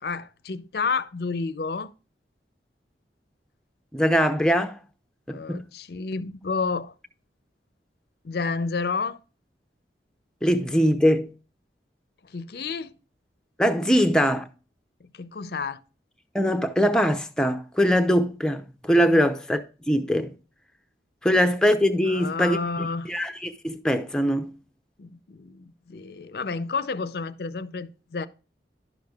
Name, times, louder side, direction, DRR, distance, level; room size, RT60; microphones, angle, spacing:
voice 1, 0.0-1.9 5.3-6.9 8.2-9.2 12.2-12.9 15.0-15.8 19.1-19.2 22.1-23.1 25.0-28.3, left 4 dB, 65° left, 0.5 m, -30 dB
voice 2, 3.9-4.8 5.3-5.6 10.4-11.3 13.6-14.5 16.3-19.6 19.9-20.3 21.2-24.6, equal, 5° left, 0.6 m, -22 dB
11.0 x 6.5 x 2.3 m
head